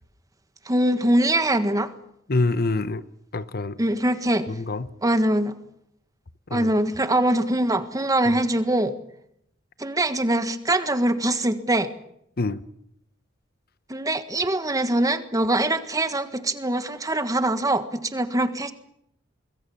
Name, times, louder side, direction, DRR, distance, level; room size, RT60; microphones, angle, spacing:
voice 1, 0.7-1.9 3.8-4.5 5.0-5.5 6.5-8.9 9.8-11.9 13.9-18.7, right 1 dB, 20° right, 1.5 m, -23 dB
voice 2, 2.3-3.0 3.3-3.8 4.5-4.9 6.5-6.7 8.2-8.4 12.4-12.6, left 3 dB, 50° left, 0.9 m, -26 dB
25.5 x 21.0 x 7.2 m
head